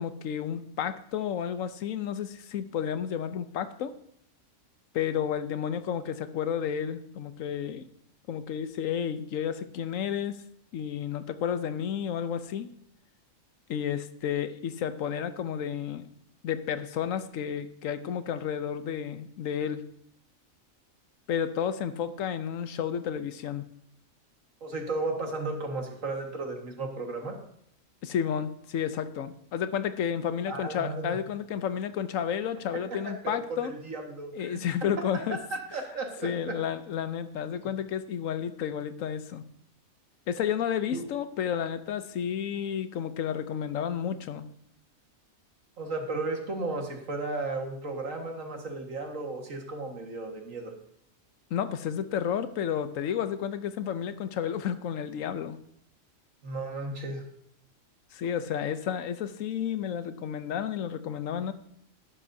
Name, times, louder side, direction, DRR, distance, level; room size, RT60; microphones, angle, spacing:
voice 1, 0.0-3.9 4.9-7.9 8.3-10.4 10.7-12.7 13.7-16.1 16.4-19.8 21.3-23.7 28.0-33.7 34.4-35.4 36.2-39.4 40.3-44.5 51.5-55.6 58.1-61.5, left 8 dB, 75° left, 12 dB, 1.1 m, -31 dB
voice 2, 24.6-27.4 30.5-31.2 33.0-34.6 35.7-36.5 40.9-41.0 45.8-50.7 56.4-57.2, right 3 dB, 70° right, 2 dB, 2.1 m, -34 dB
13.5 x 11.5 x 2.7 m, 0.69 s
omnidirectional pair, 1.4 m